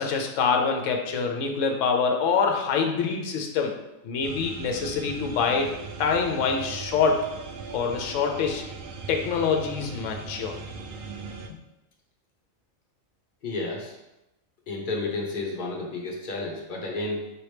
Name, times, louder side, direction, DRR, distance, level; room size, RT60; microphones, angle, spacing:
voice 1, 0.0-3.7 4.0-5.7 6.0-7.2 7.7-8.7 9.1-10.6, left 5 dB, 70° left, 3 dB, 0.9 m, -25 dB
sound 1, 4.2-11.5, right 5 dB, 65° right, 0.5 m, -39 dB
voice 2, 13.4-13.9 14.7-17.3, left 2 dB, 45° left, -1 dB, 0.9 m, -31 dB
4.9 x 3.0 x 3.3 m, 0.93 s
omnidirectional pair, 1.4 m